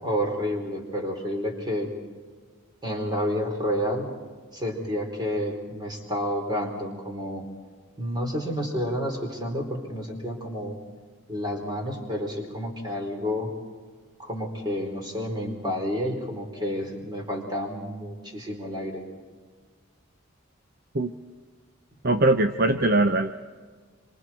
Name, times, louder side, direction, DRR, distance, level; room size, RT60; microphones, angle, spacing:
voice 1, 0.0-1.9 2.8-4.1 4.5-7.4 8.0-10.8 11.3-13.5 14.2-19.0, equal, 20° right, 1 dB, 4.2 m, -30 dB
voice 2, 22.0-23.3, right 2 dB, 45° right, 8 dB, 0.7 m, -21 dB
27.0 x 26.0 x 4.5 m, 1.6 s
head